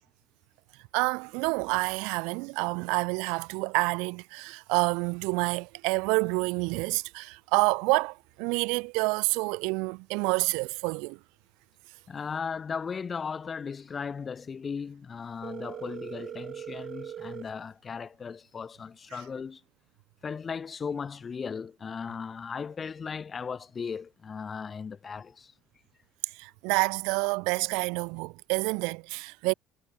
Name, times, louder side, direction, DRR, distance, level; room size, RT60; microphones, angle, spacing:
voice 1, 0.9-11.2 19.1-19.2 26.4-29.5, right 30 dB, 85° right, 0.4 m, -28 dB
voice 2, 12.1-19.6 20.2-25.5, left 6 dB, 35° left, 1.8 m, -37 dB
Telephone, 15.4-17.4, right 9 dB, 50° right, 1.5 m, -40 dB
supercardioid pair, 85°, 0 cm